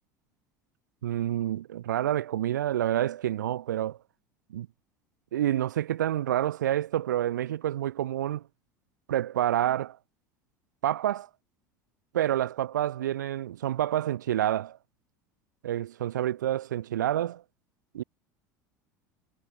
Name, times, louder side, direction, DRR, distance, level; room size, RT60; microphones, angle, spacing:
voice 1, 1.0-4.0 4.5-4.7 5.3-8.4 9.1-10.0 10.8-11.3 12.1-14.8 15.6-17.4 17.9-18.0, right 12 dB, 80° right, 2.8 m, -28 dB
hypercardioid pair, 75°, 10 cm